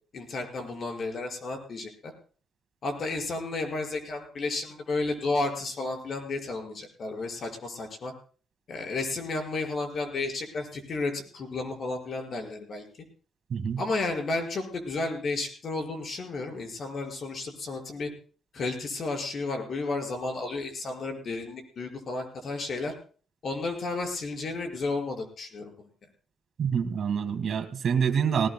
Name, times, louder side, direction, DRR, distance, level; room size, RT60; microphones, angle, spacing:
voice 1, 0.1-2.1 2.8-8.1 8.7-12.9 13.8-18.1 18.5-22.9 23.4-25.9, left 3 dB, 50° left, 3 dB, 5.3 m, -32 dB
voice 2, 26.6-28.5, right 7 dB, 55° right, 5 dB, 2.0 m, -26 dB
20.5 x 19.0 x 2.2 m, 0.40 s
cardioid pair, 90°, 0 cm